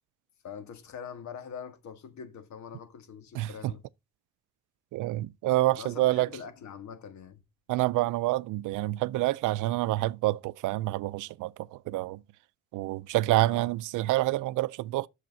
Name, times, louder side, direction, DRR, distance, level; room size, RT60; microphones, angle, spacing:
voice 1, 0.4-3.8 5.8-7.4 13.5-13.7, left 7 dB, 70° left, 1.7 m, -43 dB
voice 2, 3.3-3.7 4.9-6.3 7.7-12.2 12.7-15.1, right 17 dB, 85° right, 0.5 m, -27 dB
7.6 x 6.6 x 5.4 m
cardioid pair, 90°, 30 cm